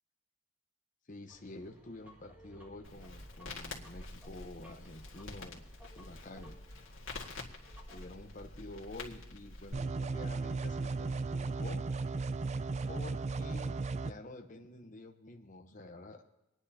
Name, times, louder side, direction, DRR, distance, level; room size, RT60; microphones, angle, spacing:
voice 1, 1.1-5.7 6.0-6.6 7.9-11.9 12.9-16.2, left 2 dB, 40° left, 2 dB, 1.0 m, -49 dB
sound 1, 1.3-8.3, equal, 10° right, 2.0 m, -60 dB
Crackle, 2.8-9.7, left 2 dB, 70° left, 2.0 m, -47 dB
sound 2, 9.7-14.1, right 3 dB, 35° right, 0.3 m, -35 dB
26.5 x 10.0 x 2.9 m, 0.96 s
head